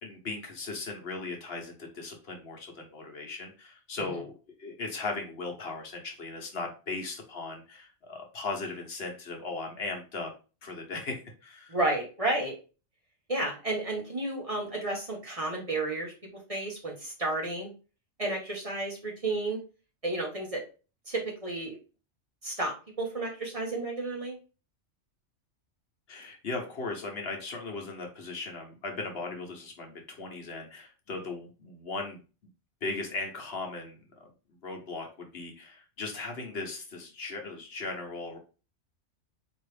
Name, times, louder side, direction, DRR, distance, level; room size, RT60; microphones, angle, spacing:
voice 1, 0.0-4.3 4.6-10.3 10.6-11.8 26.1-32.2 32.8-34.3 34.6-38.4, left 3 dB, 60° left, 2 dB, 1.1 m, -38 dB
voice 2, 11.7-12.5 13.3-16.1 16.5-17.7 18.2-19.6 20.0-20.6 21.1-21.8 22.4-24.4, right 2 dB, 30° right, -1 dB, 1.1 m, -32 dB
4.5 x 3.0 x 3.3 m, 0.33 s
omnidirectional pair, 1.2 m